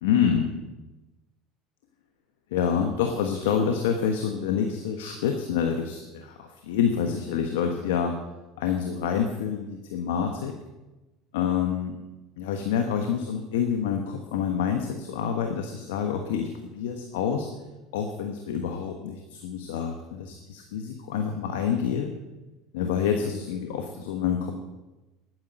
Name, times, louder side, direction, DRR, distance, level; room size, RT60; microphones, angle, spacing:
voice 1, 0.0-0.5 2.5-8.2 8.6-10.6 11.3-12.0 12.4-17.5 17.9-22.1 22.7-24.5, left 7 dB, 85° left, 5 dB, 1.3 m, -27 dB
12.0 x 9.7 x 7.6 m, 1.1 s
supercardioid pair, 100°, 0 cm